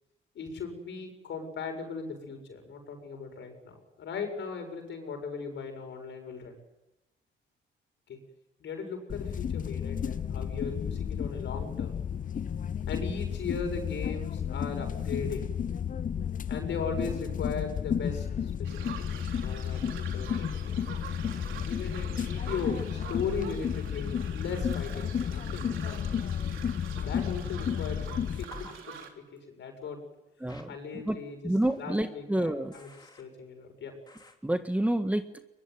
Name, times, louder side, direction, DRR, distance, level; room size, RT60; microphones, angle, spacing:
voice 1, 0.3-6.6 8.1-8.2 8.6-11.9 12.9-15.5 16.5-19.1 19.4-20.6 21.6-26.0 27.0-30.0 30.7-31.5 31.8-32.9 33.1-33.9, left 5 dB, 70° left, 5 dB, 7.3 m, -38 dB
sound 1, 9.1-28.4, left 8 dB, 40° left, 0.8 m, -32 dB
sound 2, 18.6-29.1, right 7 dB, 80° right, 3.6 m, -46 dB
sound 3, 28.5-28.7 30.5-30.6 31.6-31.9 32.7-33.2 34.1-34.3, left 3 dB, 20° left, 3.4 m, -49 dB
voice 2, 30.4-31.2 31.4-32.7 34.4-35.4, right 1 dB, 5° right, 8 dB, 1.6 m, -29 dB
23.0 x 22.0 x 9.6 m, 0.98 s
cardioid pair, 90°, 20 cm